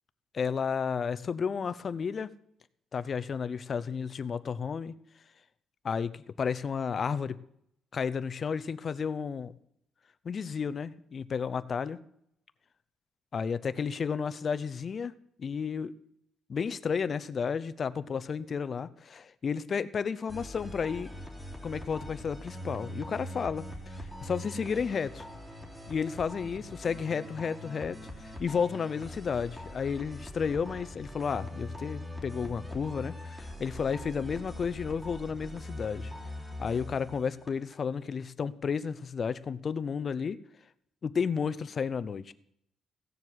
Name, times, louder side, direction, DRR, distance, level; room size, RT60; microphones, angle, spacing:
voice 1, 0.3-2.3 2.9-4.9 5.8-7.4 7.9-9.5 10.2-12.0 13.3-15.1 15.4-15.9 16.5-21.1 21.6-23.6 24.2-25.3 25.9-36.1 36.6-40.4 41.0-42.3, left 6 dB, 40° left, 14 dB, 0.7 m, -32 dB
sound 1, 20.3-37.7, left 1 dB, 10° right, 3.3 m, -42 dB
16.0 x 7.4 x 8.1 m, 0.72 s
cardioid pair, 135°, 0 cm